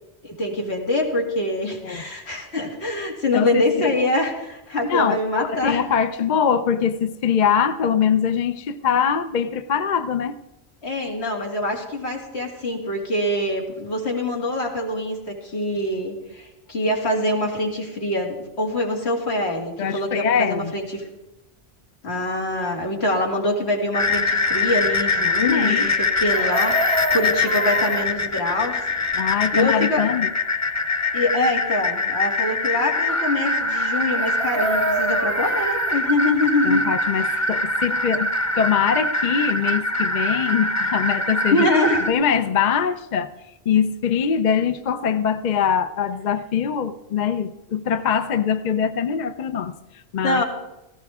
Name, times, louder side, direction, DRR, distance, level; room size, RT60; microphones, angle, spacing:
voice 1, 0.2-5.8 10.8-21.1 22.0-28.9 29.5-30.1 31.1-36.9 41.5-42.1 50.2-50.4, left 1 dB, 80° left, 0 dB, 2.8 m, -24 dB
voice 2, 3.3-3.9 4.9-10.4 19.8-20.7 25.3-25.9 29.2-30.3 36.6-41.7 42.1-43.3 43.7-50.4, left 7 dB, 50° left, 10 dB, 0.7 m, -23 dB
sound 1, 23.9-42.1, left 2 dB, 15° left, 0.9 m, -23 dB
Chicken rooster, 26.3-28.1 34.2-36.0 38.2-38.3 38.6-38.8, right 2 dB, 70° right, 1.0 m, -28 dB
17.0 x 16.0 x 3.6 m, 0.94 s
omnidirectional pair, 1.1 m